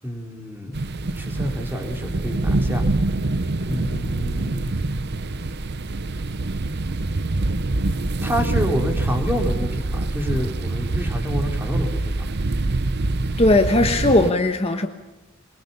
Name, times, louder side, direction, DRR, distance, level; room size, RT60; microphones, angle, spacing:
voice 1, 0.0-0.8 1.2-2.8 3.7-4.7 8.2-12.3, equal, 10° right, 3 dB, 3.9 m, -28 dB
sound 1, 0.7-14.3, right 2 dB, 50° right, 0.8 m, -25 dB
voice 2, 13.4-14.9, left 2 dB, 30° left, 5 dB, 1.3 m, -18 dB
23.5 x 22.5 x 7.0 m, 1.1 s
head